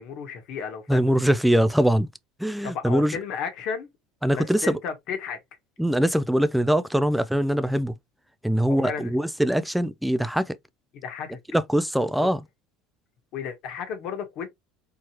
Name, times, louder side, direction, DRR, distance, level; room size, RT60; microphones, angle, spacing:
voice 1, 0.0-1.0 2.6-3.9 4.3-5.4 8.7-9.1 10.9-11.4 12.2-12.3 13.3-14.5, left 7 dB, 60° left, 1.6 m, -33 dB
voice 2, 0.9-2.1 2.4-3.2 4.2-4.8 5.8-8.0 8.4-10.6 11.5-12.4, equal, ahead, 0.4 m, -22 dB
4.5 x 3.1 x 2.9 m
supercardioid pair, 95°, 0 cm